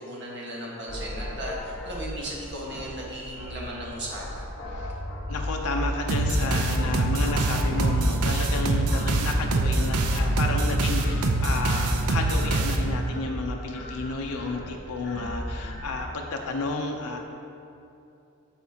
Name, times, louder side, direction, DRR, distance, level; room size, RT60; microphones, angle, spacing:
voice 1, 0.0-4.6, right 1 dB, 50° right, -4 dB, 1.5 m, -36 dB
sound 1, 0.9-16.1, equal, 50° left, 1.1 m, -35 dB
voice 2, 5.3-17.2, left 3 dB, 75° left, 1 dB, 0.6 m, -32 dB
sound 2, 6.1-13.2, right 2 dB, 85° right, 0.6 m, -24 dB
12.5 x 4.3 x 2.8 m, 2.7 s
head